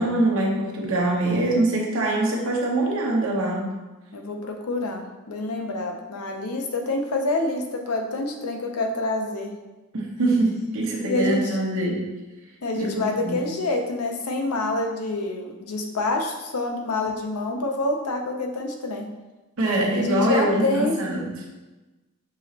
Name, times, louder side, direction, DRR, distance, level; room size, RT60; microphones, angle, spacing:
voice 1, 0.0-3.7 9.9-12.0 12.7-13.4 19.6-21.3, right 1 dB, 65° right, -1 dB, 1.0 m, -23 dB
voice 2, 4.1-9.5 11.0-11.6 12.6-19.1 19.9-21.0, left 2 dB, 80° left, 2 dB, 0.7 m, -27 dB
6.1 x 3.0 x 2.8 m, 1.1 s
head